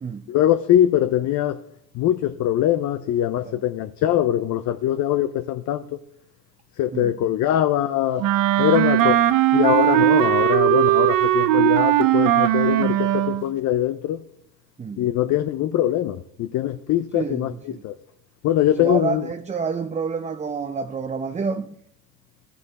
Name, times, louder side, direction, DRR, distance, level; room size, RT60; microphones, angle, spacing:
voice 1, 0.3-1.6 1.9-6.0 6.8-8.3 8.6-9.2 9.5-14.2 15.0-17.5 17.8-17.9 18.4-19.3, left 12 dB, 55° left, 0.5 m, -22 dB
Wind instrument woodwind instrument, 8.2-13.4, right 14 dB, 65° right, 0.7 m, -18 dB
voice 2, 17.1-17.8 18.8-21.7, right 5 dB, 20° right, 0.5 m, -29 dB
14.0 x 5.7 x 4.1 m
supercardioid pair, 75°, 36 cm